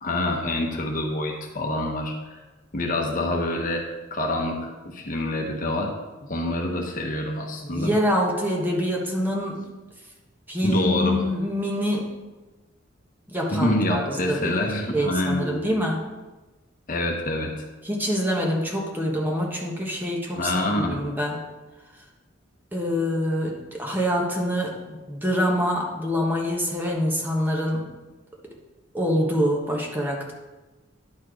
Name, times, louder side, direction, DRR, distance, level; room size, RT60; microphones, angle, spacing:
voice 1, 0.0-2.4 2.7-5.9 6.3-7.9 10.6-11.2 13.5-15.8 16.9-17.6 20.3-21.0, left 1 dB, 40° left, 1 dB, 1.0 m, -26 dB
voice 2, 7.6-9.6 10.5-12.0 13.3-14.5 14.9-16.0 17.8-21.4 22.7-27.9 28.9-30.3, equal, 10° right, -1 dB, 1.2 m, -25 dB
10.5 x 4.4 x 5.0 m, 1.2 s
head